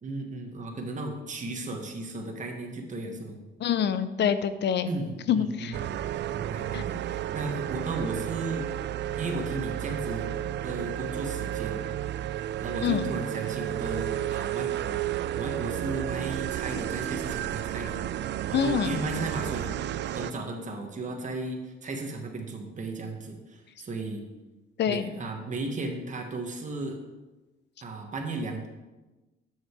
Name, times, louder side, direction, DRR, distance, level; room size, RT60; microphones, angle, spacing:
voice 1, 0.0-3.4 4.9-5.8 6.3-8.7 9.2-10.3 10.6-11.9 12.6-15.0 15.3-18.0 18.5-19.7 20.1-24.2 24.9-27.0 27.8-28.7, right 2 dB, 40° right, 2 dB, 1.5 m, -35 dB
voice 2, 3.6-4.9 5.3-5.8 6.7-6.8 12.8-13.1 18.5-19.0 24.8-25.1, left 8 dB, 60° left, 12 dB, 0.7 m, -26 dB
sound 1, 5.7-20.3, right 12 dB, 60° right, 0.4 m, -32 dB
8.9 x 6.4 x 4.7 m, 1.1 s
cardioid pair, 90°, 20 cm